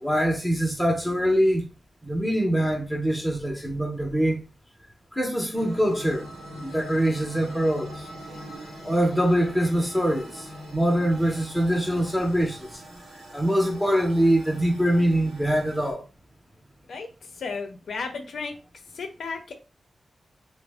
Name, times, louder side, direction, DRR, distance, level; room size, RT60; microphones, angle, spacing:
voice 1, 0.0-1.6 2.0-4.4 5.2-6.3 6.5-7.9 8.8-10.5 10.7-12.8 13.3-16.0, equal, ahead, 0.5 m, -23 dB
sound 1, 5.5-15.9, equal, 80° right, 0.9 m, -43 dB
voice 2, 17.4-18.5 18.9-19.6, left 4 dB, 80° left, 0.5 m, -33 dB
2.4 x 2.0 x 3.3 m
wide cardioid pair, 135°, 0 cm